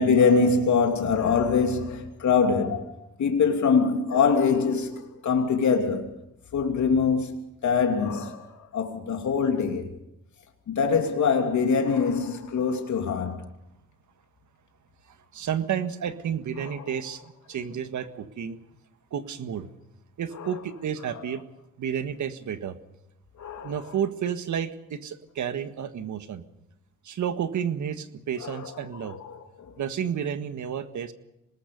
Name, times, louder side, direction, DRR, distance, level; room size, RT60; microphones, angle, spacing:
voice 1, 0.0-2.9 3.2-6.1 6.5-7.3 7.6-9.9 10.7-13.4 16.6-16.9 20.3-20.6 21.1-21.3 23.4-23.9 28.4-29.7, left 5 dB, 70° left, 2.9 m, -24 dB
voice 2, 15.3-18.6 19.1-19.7 20.2-21.4 21.8-22.8 23.6-26.4 27.0-29.2 29.8-31.1, right 8 dB, 70° right, 1.7 m, -31 dB
25.5 x 20.0 x 5.4 m
cardioid pair, 70°, 30 cm